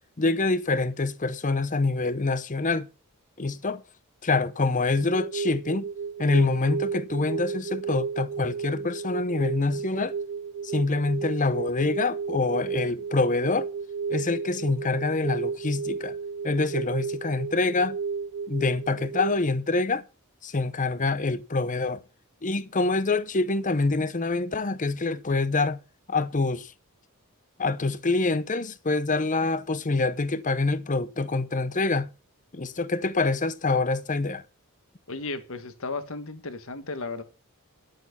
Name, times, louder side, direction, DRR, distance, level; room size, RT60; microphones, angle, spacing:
voice 1, 0.2-2.9 3.4-3.8 4.2-5.9 6.2-10.1 10.6-13.7 14.1-16.1 16.4-18.0 18.5-20.0 20.4-22.0 22.4-25.8 26.1-26.7 27.6-32.1 32.5-34.4, left 3 dB, 35° left, 0.8 m, -26 dB
sound 1, 5.0-19.4, right 5 dB, 60° right, 0.5 m, -33 dB
voice 2, 35.1-37.2, left 3 dB, 65° left, 1.6 m, -34 dB
10.5 x 7.6 x 5.8 m
head